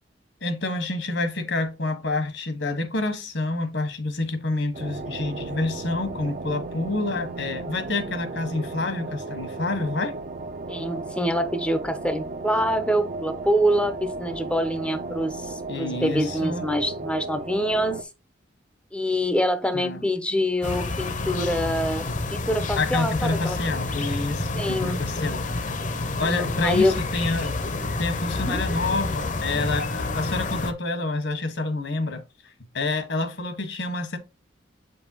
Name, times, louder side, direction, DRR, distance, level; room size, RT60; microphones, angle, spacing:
voice 1, 0.4-10.2 15.7-16.6 19.7-20.0 22.8-25.5 26.0-27.6 28.0-34.2, left 2 dB, 70° left, 1.4 m, -28 dB
sound 1, 4.7-18.0, right 3 dB, 45° right, 0.6 m, -35 dB
voice 2, 10.7-18.1 18.9-23.6 24.6-25.0 26.2-27.0 28.4-28.6, equal, 5° left, 0.6 m, -25 dB
sound 2, 20.6-30.7, left 2 dB, 40° left, 0.8 m, -29 dB
7.7 x 5.4 x 2.9 m
head